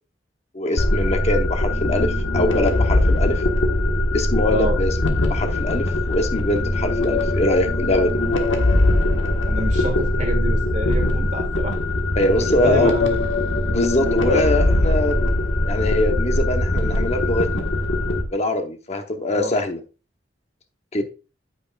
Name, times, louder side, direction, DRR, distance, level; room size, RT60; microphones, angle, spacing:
voice 1, 0.5-3.4 4.1-8.2 12.2-12.9 13.7-15.4 15.6-17.6 18.3-19.8 20.9-21.0, left 1 dB, 35° left, 5 dB, 0.9 m, -23 dB
sound 1, 0.8-18.2, left 1 dB, 85° left, 1.5 m, -21 dB
voice 2, 4.4-4.8 9.4-11.8 12.4-13.2 19.3-19.5 21.0-21.1, equal, 40° right, 4 dB, 1.7 m, -27 dB
8.8 x 8.4 x 2.4 m, 0.32 s
head